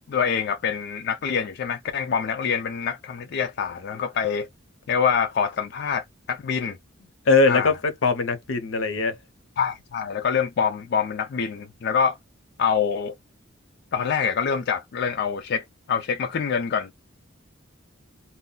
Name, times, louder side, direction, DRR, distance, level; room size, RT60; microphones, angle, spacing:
voice 1, 0.1-4.5 4.9-6.8 7.5-7.7 9.6-12.2 12.6-13.1 13.9-16.9, left 6 dB, 55° left, 0.4 m, -25 dB
voice 2, 7.3-9.2, left 3 dB, 85° left, 0.7 m, -21 dB
2.2 x 2.1 x 3.7 m
head